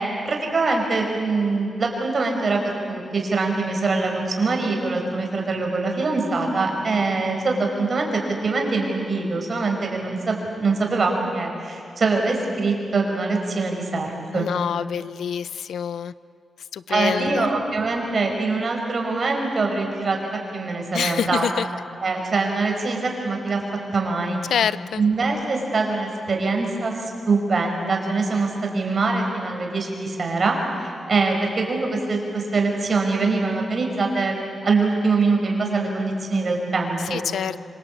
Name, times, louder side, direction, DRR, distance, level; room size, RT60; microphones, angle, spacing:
voice 1, 0.0-14.5 16.9-21.4 22.0-23.6 23.9-24.4 25.0-26.9 27.3-34.4 34.6-37.2, right 3 dB, 50° right, 2 dB, 5.6 m, -23 dB
voice 2, 14.3-16.1 16.7-17.5 20.9-21.7 24.5-25.0 37.1-37.6, left 8 dB, 90° left, 17 dB, 0.6 m, -26 dB
26.5 x 25.0 x 8.6 m, 2.4 s
wide cardioid pair, 105°, 0 cm